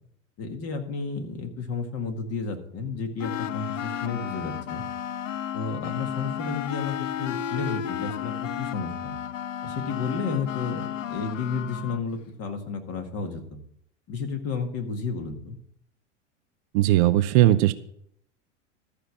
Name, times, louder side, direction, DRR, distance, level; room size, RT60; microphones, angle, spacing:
voice 1, 0.4-4.8 5.5-9.2 9.6-13.6 14.1-15.6, left 4 dB, 40° left, 5 dB, 1.9 m, -32 dB
sound 1, 3.2-12.0, left 10 dB, 85° left, 0.6 m, -33 dB
voice 2, 16.7-17.7, right 14 dB, 50° right, 11 dB, 0.7 m, -18 dB
13.5 x 5.0 x 7.2 m, 0.69 s
hypercardioid pair, 95°, 37 cm